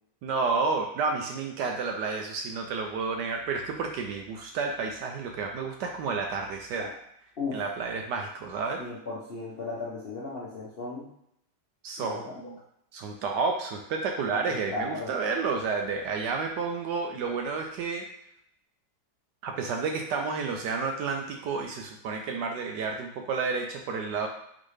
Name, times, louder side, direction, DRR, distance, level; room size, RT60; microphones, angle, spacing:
voice 1, 0.2-6.9 7.5-8.8 11.8-12.6 12.9-18.1 19.4-24.3, right 4 dB, 75° right, 3 dB, 1.0 m, -30 dB
voice 2, 8.8-11.1 12.0-12.2 14.5-15.1, left 3 dB, 55° left, -6 dB, 0.6 m, -36 dB
4.1 x 3.6 x 3.2 m, 0.75 s
omnidirectional pair, 2.1 m